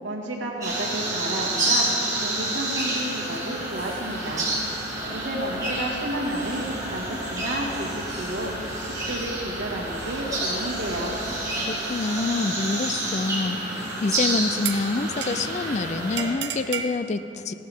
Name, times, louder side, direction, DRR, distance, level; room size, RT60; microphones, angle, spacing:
voice 1, 0.0-1.9 2.2-4.5 5.1-8.5 8.8-11.2, right 1 dB, 80° right, -2 dB, 2.1 m, -31 dB
sound 1, 0.6-16.3, right 1 dB, 20° right, 3.5 m, -29 dB
sound 2, 3.2-11.5, right 2 dB, 65° left, 2.5 m, -46 dB
voice 2, 11.5-17.5, left 3 dB, 35° left, 12 dB, 0.4 m, -27 dB
sound 3, 13.9-14.2 14.6-15.6 16.2-17.0, right 8 dB, 65° right, 0.6 m, -33 dB
16.5 x 13.0 x 3.6 m, 3.0 s
head